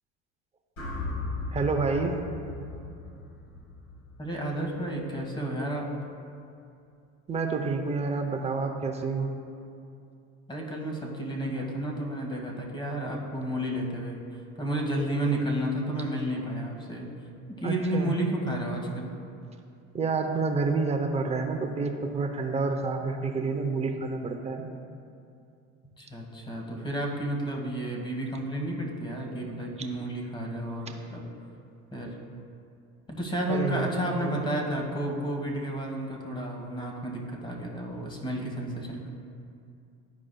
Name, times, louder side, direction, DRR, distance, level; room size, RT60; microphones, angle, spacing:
sound 1, 0.8-5.0, left 2 dB, 35° left, 1.6 m, -37 dB
voice 1, 1.5-2.2 7.3-9.3 17.6-18.2 19.9-24.6 33.5-34.4, right 4 dB, 20° right, 3 dB, 0.7 m, -29 dB
voice 2, 4.2-5.9 10.5-17.1 17.6-19.1 26.0-31.2 31.9-32.2 33.1-39.1, right 1 dB, 15° left, 0 dB, 1.4 m, -31 dB
12.5 x 4.8 x 2.2 m, 2.5 s
supercardioid pair, 110°, 33 cm